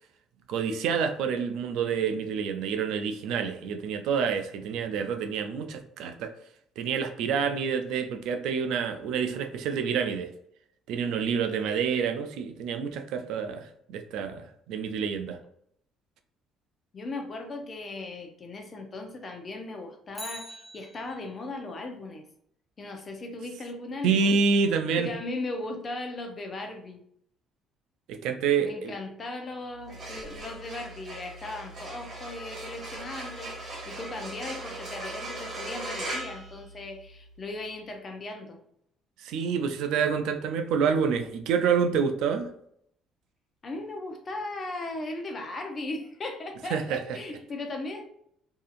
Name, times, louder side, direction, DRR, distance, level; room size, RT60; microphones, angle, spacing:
voice 1, 0.5-6.3 6.8-10.3 10.9-15.4 24.0-25.1 28.1-28.9 39.2-42.5 46.7-47.2, right 6 dB, 75° right, 7 dB, 0.3 m, -28 dB
voice 2, 16.9-22.2 22.8-24.4 25.0-27.0 28.6-38.6 43.6-48.1, left 2 dB, 35° left, 4 dB, 0.6 m, -37 dB
Bicycle, 20.1-21.5 29.8-29.9, equal, 10° left, 0.8 m, -44 dB
sound 1, 29.8-37.2, right 1 dB, 40° right, 1.4 m, -39 dB
2.7 x 2.4 x 2.4 m, 0.70 s
cardioid pair, 90°, 0 cm